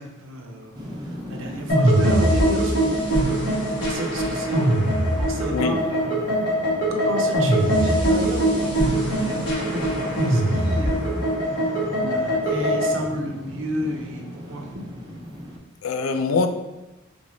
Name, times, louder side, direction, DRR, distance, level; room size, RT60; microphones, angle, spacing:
voice 1, 0.0-3.5 3.8-6.3 6.9-14.9, equal, 65° right, 0.5 m, -32 dB
sound 1, 0.7-15.6, equal, 20° right, 0.5 m, -37 dB
sound 2, 1.7-13.0, right 1 dB, 60° left, 1.4 m, -22 dB
voice 2, 15.8-16.5, left 4 dB, 85° left, 0.3 m, -24 dB
3.7 x 2.6 x 3.1 m
head